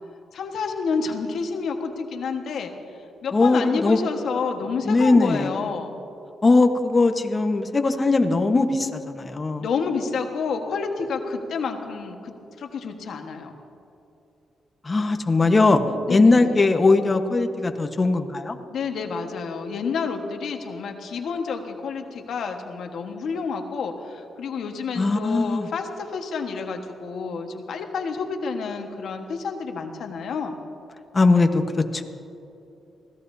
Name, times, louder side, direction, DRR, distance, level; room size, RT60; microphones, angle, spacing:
voice 1, 0.3-6.0 9.6-13.5 16.0-16.6 18.7-30.6, left 5 dB, 75° left, 4 dB, 1.4 m, -29 dB
voice 2, 3.3-4.0 4.8-5.5 6.4-9.6 14.8-15.8 16.1-18.6 25.0-25.7 31.1-32.0, left 3 dB, 30° left, 6 dB, 1.1 m, -20 dB
25.0 x 17.0 x 2.7 m, 2.9 s
cardioid pair, 90°, 0 cm